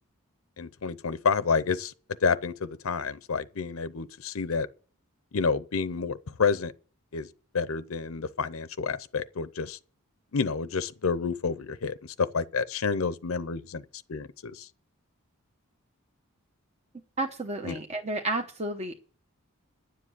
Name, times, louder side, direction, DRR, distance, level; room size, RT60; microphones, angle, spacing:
voice 1, 0.6-1.9 2.2-4.7 5.3-6.7 7.1-7.3 7.5-9.8 10.3-13.8 14.1-14.7 17.6-17.8, left 5 dB, 75° left, 0.6 m, -29 dB
voice 2, 17.2-18.9, right 2 dB, 30° right, 0.9 m, -31 dB
10.0 x 7.6 x 8.2 m
head